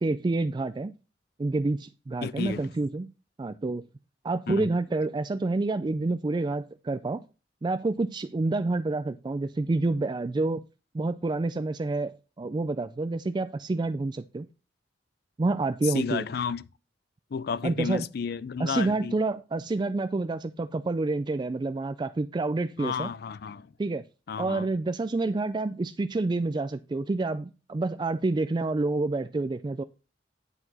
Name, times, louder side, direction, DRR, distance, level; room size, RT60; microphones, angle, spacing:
voice 1, 0.0-0.9 1.4-3.1 3.4-3.8 4.2-7.2 7.6-10.6 10.9-14.5 15.4-16.3 17.6-18.0 18.6-23.1 23.8-24.0 24.4-29.8, right 2 dB, 25° right, 0.3 m, -28 dB
voice 2, 2.2-2.7 4.5-4.7 15.8-16.7 17.3-19.2 22.8-23.7 24.3-24.7, left 6 dB, 60° left, 0.4 m, -32 dB
9.9 x 4.7 x 4.0 m
head